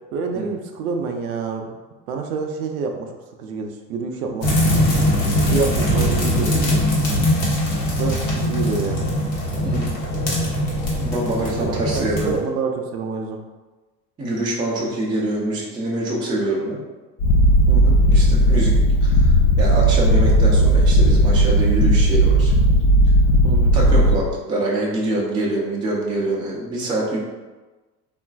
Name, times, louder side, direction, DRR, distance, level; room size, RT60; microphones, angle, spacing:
voice 1, 0.1-1.8 2.1-3.1 3.4-4.5 5.2-6.6 8.0-9.1 10.9-13.4 17.7-18.0 23.4-23.8, right 5 dB, 60° right, 3 dB, 0.5 m, -28 dB
sound 1, 4.4-12.4, equal, 85° left, 1.0 m, -21 dB
voice 2, 11.0-12.3 14.2-16.8 18.1-22.5 23.7-27.2, right 1 dB, 10° right, -3 dB, 0.4 m, -25 dB
Purr, 17.2-24.2, right 1 dB, 60° left, 0.5 m, -15 dB
3.6 x 2.5 x 2.2 m, 1.2 s
figure-of-eight pair, 70°, 49 cm